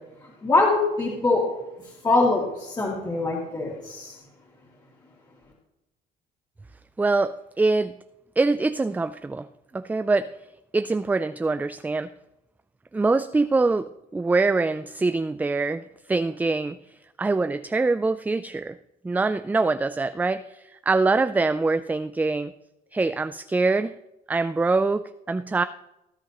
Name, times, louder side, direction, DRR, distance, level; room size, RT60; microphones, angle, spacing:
voice 1, 0.4-1.4 2.0-4.2, left 3 dB, 25° left, -5 dB, 2.6 m, -23 dB
voice 2, 7.0-7.9 8.4-9.5 9.7-10.3 10.7-12.1 12.9-16.8 17.2-18.8 19.0-22.5 22.9-23.9 24.3-25.6, right 3 dB, 10° right, 12 dB, 0.3 m, -24 dB
19.0 x 10.0 x 3.0 m, 0.92 s
cardioid pair, 110°, 17 cm